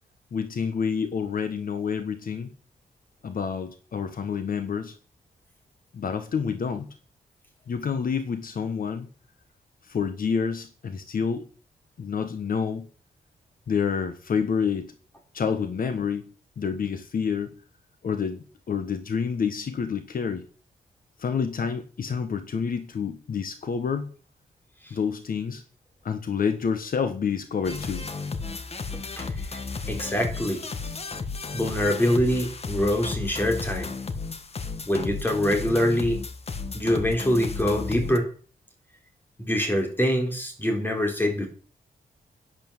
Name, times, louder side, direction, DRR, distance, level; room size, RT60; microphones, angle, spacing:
voice 1, 0.3-2.5 3.2-4.9 5.9-6.9 7.7-9.1 9.9-11.4 12.0-12.9 13.7-14.9 15.3-16.2 16.6-17.5 18.0-20.4 21.2-24.1 24.9-25.6 26.0-28.0, left 6 dB, 60° left, 9 dB, 1.5 m, -28 dB
sound 1, 27.6-38.2, left 4 dB, 40° left, 1.5 m, -33 dB
voice 2, 29.9-30.6 31.5-33.9 34.9-36.2 36.7-38.3 39.4-41.5, equal, 10° left, 3 dB, 3.9 m, -24 dB
11.0 x 10.5 x 7.4 m, 0.41 s
wide cardioid pair, 145°, 16 cm